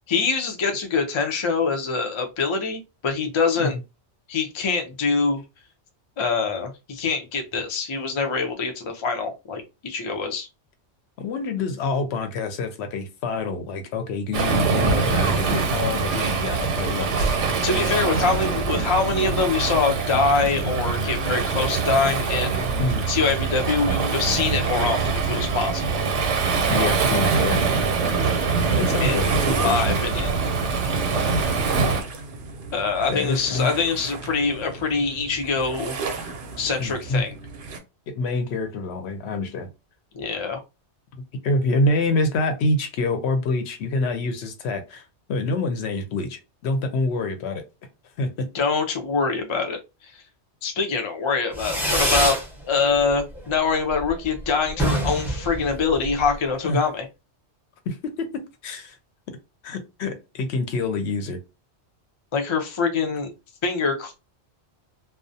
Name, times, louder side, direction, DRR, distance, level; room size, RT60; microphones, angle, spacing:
voice 1, 0.1-3.8 4.3-5.4 6.2-10.5 17.6-22.7 23.1-26.0 29.0-29.2 29.5-30.3 32.7-36.0 36.6-37.4 40.1-40.6 48.5-49.8 50.6-52.4 52.7-57.1 62.3-63.3 63.6-64.2, left 4 dB, 50° left, 0.3 m, -24 dB
voice 2, 11.2-17.3 22.8-23.0 26.7-27.6 28.8-30.0 33.1-33.7 36.8-37.2 38.1-39.7 41.4-47.6 48.2-48.5 56.6-56.9 57.9-59.0 59.6-61.4, left 2 dB, 70° left, 0.8 m, -26 dB
Waves surf, 14.3-32.0, right 4 dB, 90° right, 0.9 m, -23 dB
sound 1, 27.3-37.8, right 4 dB, 60° right, 0.6 m, -34 dB
Fireworks, 51.5-52.5 52.8-53.4 53.7-53.8 54.0-54.1 54.4-54.5 54.7-56.3, right 1 dB, ahead, 0.7 m, -25 dB
2.3 x 2.0 x 2.6 m
omnidirectional pair, 1.2 m